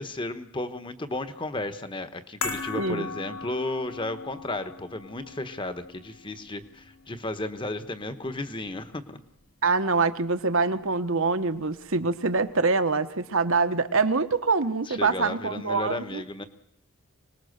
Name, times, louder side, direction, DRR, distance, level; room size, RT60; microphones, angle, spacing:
voice 1, 0.0-9.2 14.9-16.4, left 2 dB, 20° left, 10 dB, 1.2 m, -34 dB
sound 1, 2.4-8.8 9.1-9.2, left 4 dB, 70° left, 2.8 m, -39 dB
voice 2, 2.7-3.1 9.6-16.2, right 4 dB, 65° right, 9 dB, 1.3 m, -25 dB
25.5 x 19.5 x 6.6 m, 0.70 s
head